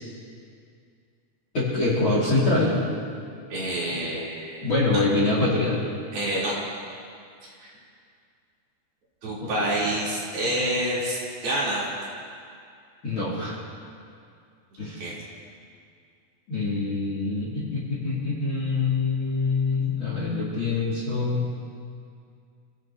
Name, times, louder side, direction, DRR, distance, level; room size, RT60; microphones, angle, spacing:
voice 1, 1.5-2.7 4.6-5.8 9.4-9.7 13.0-13.6 14.8-15.1 16.5-21.4, left 3 dB, 35° left, -7 dB, 3.1 m, -25 dB
voice 2, 3.5-4.7 6.1-6.6 7.4-7.7 9.2-11.8 15.0-15.2, right 1 dB, 55° right, -8 dB, 5.8 m, -28 dB
28.5 x 16.0 x 3.0 m, 2.3 s
omnidirectional pair, 5.1 m